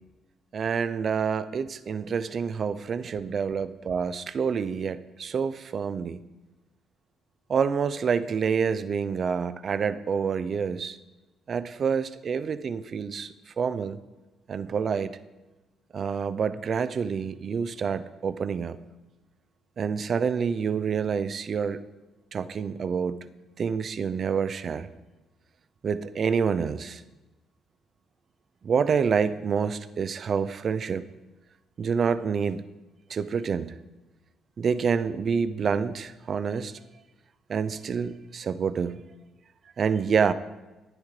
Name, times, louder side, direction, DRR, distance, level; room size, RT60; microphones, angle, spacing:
voice 1, 0.5-6.2 7.5-11.0 11.5-14.0 14.5-15.1 15.9-18.8 19.8-21.8 22.3-23.3 23.6-24.9 25.8-27.0 28.6-31.0 31.8-32.6 33.1-33.8 34.6-36.7 37.5-39.0 39.8-40.3, right 6 dB, 55° right, 13 dB, 0.5 m, -27 dB
12.0 x 9.8 x 3.3 m, 1.1 s
supercardioid pair, 60°, 0 cm